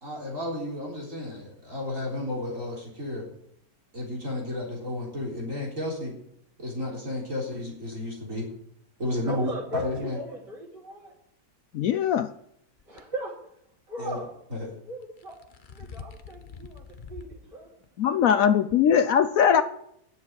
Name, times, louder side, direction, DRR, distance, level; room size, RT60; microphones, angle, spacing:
voice 1, 0.0-3.3 3.9-6.1 6.6-8.5 9.0-10.2 14.0-14.2 14.5-14.7, left 1 dB, 50° right, -3 dB, 4.1 m, -32 dB
voice 2, 9.2-11.1 12.9-13.3 13.9-14.3 14.8-15.4 15.7-17.7 18.0-18.2 19.5-19.6, right 2 dB, 90° right, -6 dB, 3.9 m, -38 dB
voice 3, 11.7-12.3 18.0-19.6, left 8 dB, 65° left, 12 dB, 0.9 m, -21 dB
sound 1, 12.8-13.0 15.0-17.4 17.8-17.9 18.7-18.8, left 5 dB, 40° left, 0.8 m, -44 dB
11.0 x 7.2 x 9.6 m, 0.72 s
omnidirectional pair, 1.8 m